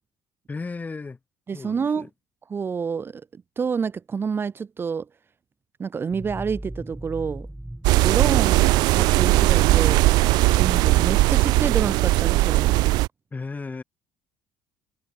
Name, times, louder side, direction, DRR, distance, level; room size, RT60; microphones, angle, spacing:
voice 1, 0.5-1.2 1.5-2.1 13.3-13.8, left 4 dB, 20° left, 5.7 m, -34 dB
voice 2, 1.5-2.1 2.5-5.0 5.8-7.5 8.0-10.1 10.5-12.7, right 6 dB, 30° right, 1.4 m, -28 dB
sound 1, 6.1-12.1, right 1 dB, 5° right, 2.2 m, -38 dB
sound 2, 7.8-13.1, right 20 dB, 75° right, 0.4 m, -19 dB
supercardioid pair, 95°, 7 cm